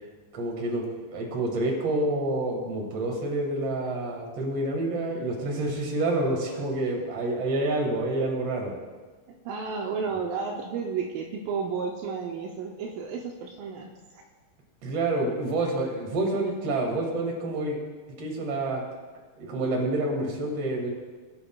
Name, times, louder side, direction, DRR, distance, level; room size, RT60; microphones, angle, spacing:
voice 1, 0.3-8.7 14.8-17.8 18.2-18.8 19.4-20.9, right 2 dB, 50° right, 0 dB, 2.5 m, -28 dB
voice 2, 9.3-14.2, right 5 dB, 80° right, 1 dB, 2.3 m, -32 dB
20.5 x 7.8 x 2.3 m, 1.4 s
omnidirectional pair, 4.0 m